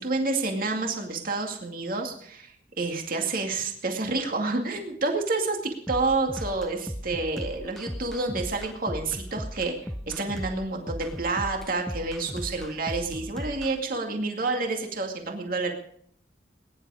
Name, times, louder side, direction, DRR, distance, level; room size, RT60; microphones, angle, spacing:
voice 1, 0.0-15.7, right 3 dB, 55° right, 3 dB, 2.3 m, -29 dB
sound 1, 5.9-13.7, equal, ahead, 0.6 m, -36 dB
21.5 x 11.0 x 4.9 m, 0.64 s
head